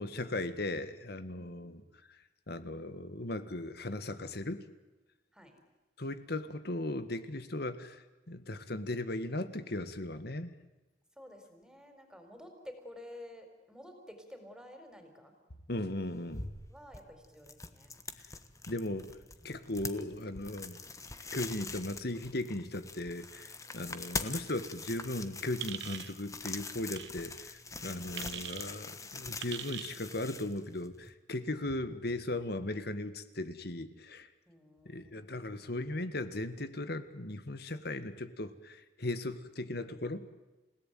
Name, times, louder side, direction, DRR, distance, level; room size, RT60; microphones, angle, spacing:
voice 1, 0.0-1.8 2.1-2.2 2.5-4.6 6.0-10.5 15.7-16.5 18.7-19.2 19.4-20.8 21.3-34.3 34.8-40.3, left 1 dB, 60° left, 11 dB, 1.7 m, -37 dB
voice 2, 1.3-1.9 5.3-5.6 11.2-15.3 16.7-17.9 23.7-24.0 31.5-31.6 34.5-35.6, left 1 dB, 5° right, 6 dB, 4.4 m, -52 dB
sound 1, 16.0-31.1, left 3 dB, 20° left, 1.3 m, -44 dB
sound 2, 25.6-26.1 26.9-27.1 28.2-28.7 29.4-30.0, right 10 dB, 70° right, 1.3 m, -41 dB
28.5 x 17.5 x 9.3 m, 1.1 s
head